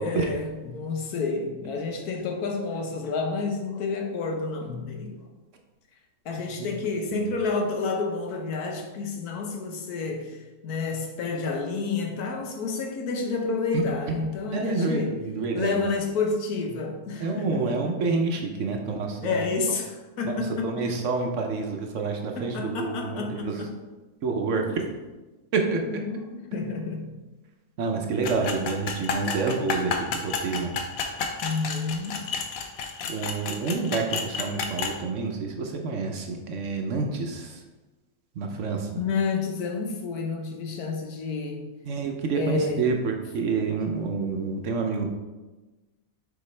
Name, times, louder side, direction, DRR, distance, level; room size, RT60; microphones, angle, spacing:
voice 1, 0.0-5.2 6.2-15.2 15.5-18.0 19.2-20.9 22.4-23.8 24.6-24.8 25.7-27.1 31.4-32.2 39.0-41.7 42.3-43.0, left 4 dB, 90° left, 3 dB, 1.4 m, -30 dB
voice 2, 14.5-15.8 17.2-19.4 20.2-23.6 24.2-24.6 25.5-25.8 27.8-30.7 31.2-31.4 33.1-37.6 38.4-39.0 41.8-45.1, right 4 dB, 65° right, 2 dB, 1.0 m, -28 dB
sound 1, 28.2-35.0, left 5 dB, 70° left, 1.1 m, -31 dB
7.0 x 4.5 x 3.2 m, 1.2 s
omnidirectional pair, 1.6 m